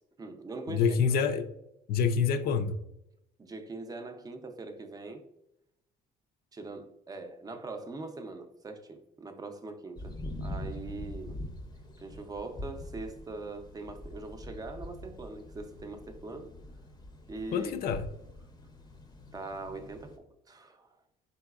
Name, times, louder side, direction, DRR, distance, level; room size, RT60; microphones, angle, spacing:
voice 1, 0.0-1.0 3.4-5.2 6.5-10.1 10.4-11.4 12.0-16.5 17.3-17.8 19.3-21.0, right 3 dB, 20° right, 0.5 m, -42 dB
voice 2, 0.7-1.4 1.9-2.8 17.5-18.0, left 6 dB, 65° left, 0.5 m, -26 dB
sound 1, 10.0-20.2, left 1 dB, 25° left, 0.6 m, -44 dB
4.0 x 3.9 x 2.3 m
cardioid pair, 110°, 17 cm